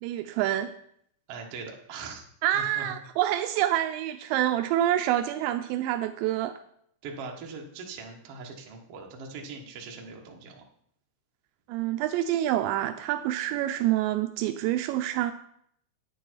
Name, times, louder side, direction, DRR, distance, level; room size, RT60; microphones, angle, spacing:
voice 1, 0.0-0.7 2.4-6.6 11.7-15.3, right 13 dB, 85° right, 8 dB, 2.8 m, -27 dB
voice 2, 1.3-2.2 2.5-2.9 7.0-10.6, right 4 dB, 70° right, 0 dB, 1.4 m, -41 dB
9.7 x 9.1 x 4.6 m, 0.69 s
omnidirectional pair, 5.1 m